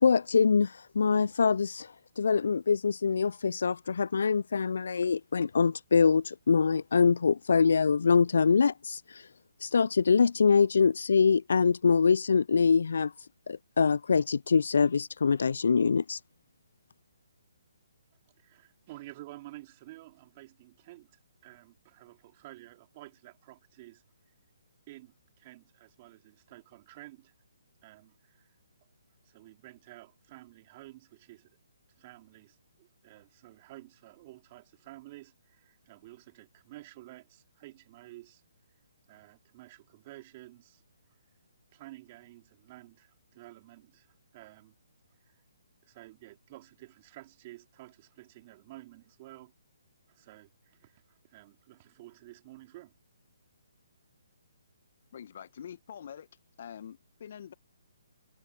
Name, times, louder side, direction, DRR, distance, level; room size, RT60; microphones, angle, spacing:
voice 1, 0.0-9.3 9.6-13.1 13.5-16.2, left 5 dB, 65° left, 0.3 m, -24 dB
voice 2, 18.4-24.3 24.9-27.3 27.8-28.5 29.2-31.5 32.0-38.4 39.1-40.8 41.1-41.3 41.7-44.7 45.2-45.4 45.8-49.5 50.1-52.9, right 18 dB, 35° right, 4.1 m, -51 dB
voice 3, 55.1-56.3 56.6-57.5, left 8 dB, 50° left, 1.5 m, -45 dB
figure-of-eight pair, 140°, 0 cm